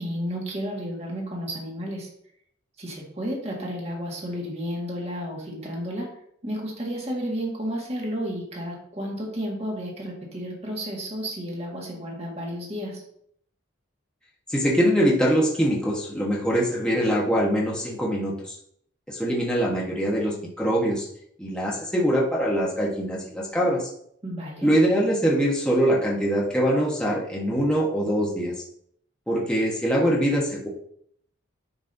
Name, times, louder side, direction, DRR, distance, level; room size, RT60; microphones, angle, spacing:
voice 1, 0.0-2.1 2.8-6.1 6.4-13.0 24.2-24.7, equal, 30° right, -2 dB, 1.8 m, -32 dB
voice 2, 14.5-18.6 19.1-21.1 21.4-23.9 24.6-28.5 29.3-30.7, equal, 5° left, -4 dB, 1.1 m, -23 dB
9.6 x 5.2 x 2.7 m, 0.67 s
head